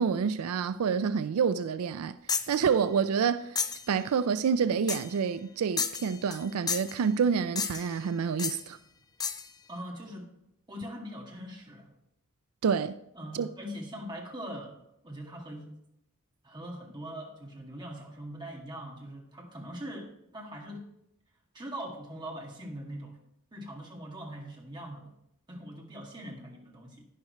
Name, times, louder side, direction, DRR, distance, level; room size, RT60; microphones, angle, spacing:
voice 1, 0.0-2.2 2.5-3.6 3.9-8.8 12.6-13.0 13.3-13.5, right 6 dB, 85° right, 0.4 m, -28 dB
sound 1, 2.3-2.6 3.6-3.9 4.9-5.2 5.8-6.4 6.7-7.0 7.6-8.0 8.4-8.6 9.2-9.5, left 6 dB, 20° left, 0.4 m, -32 dB
voice 2, 9.7-10.3 10.7-11.9 13.2-14.7 15.0-15.7 16.4-20.9 21.5-23.2 23.5-25.1 25.5-27.0, equal, 20° right, 2.0 m, -42 dB
11.0 x 10.5 x 3.2 m
head